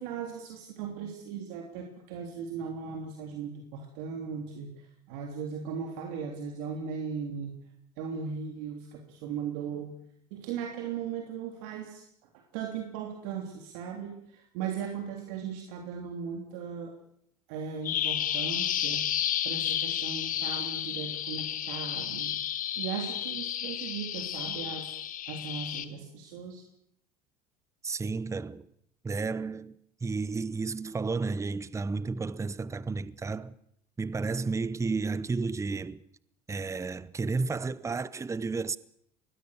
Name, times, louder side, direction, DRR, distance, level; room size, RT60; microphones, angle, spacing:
voice 1, 0.0-7.6 8.0-10.0 10.3-17.0 17.5-19.0 19.4-22.3 22.8-24.9 25.3-26.6, right 6 dB, 70° right, 3.4 m, -38 dB
Bird vocalization bird call bird song, 17.8-25.8, left 11 dB, 45° left, 1.9 m, -32 dB
voice 2, 27.8-28.7 29.0-33.5 34.0-36.0 36.5-38.8, right 4 dB, 15° right, 0.9 m, -32 dB
24.5 x 20.0 x 6.6 m
hypercardioid pair, 90°, 19 cm